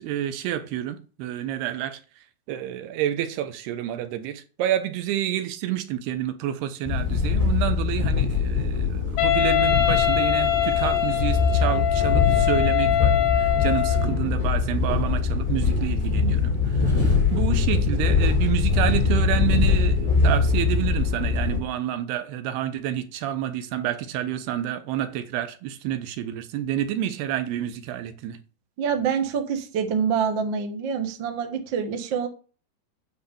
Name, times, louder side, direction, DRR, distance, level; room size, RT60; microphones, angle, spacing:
voice 1, 0.0-2.0 2.5-28.4, right 11 dB, 80° right, 2.9 m, -29 dB
sound 1, 6.8-21.6, left 4 dB, 25° left, 0.7 m, -22 dB
Wind instrument woodwind instrument, 9.2-14.2, left 12 dB, 80° left, 3.4 m, -23 dB
voice 2, 28.8-32.3, right 6 dB, 60° right, 1.2 m, -26 dB
9.8 x 4.5 x 7.0 m
omnidirectional pair, 4.7 m